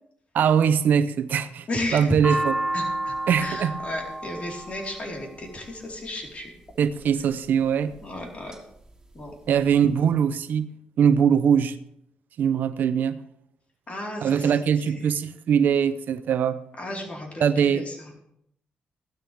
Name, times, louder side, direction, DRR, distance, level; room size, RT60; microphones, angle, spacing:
voice 1, 0.3-2.5 3.3-3.7 6.8-8.0 9.5-10.7 11.0-11.8 12.4-13.2 14.2-16.6 17.4-17.9, right 7 dB, 75° right, 13 dB, 0.7 m, -22 dB
voice 2, 1.7-2.4 2.7-6.5 8.0-8.5 9.1-9.3 13.9-14.5 14.8-15.0 16.8-18.1, left 1 dB, 45° left, -1 dB, 4.3 m, -33 dB
sound 1, 1.8-6.0 6.9-7.3 7.9-8.6 8.9-9.0 9.2-10.0, right 1 dB, 20° right, 3.0 m, -30 dB
15.5 x 12.5 x 3.5 m, 0.75 s
cardioid pair, 80°, 3 cm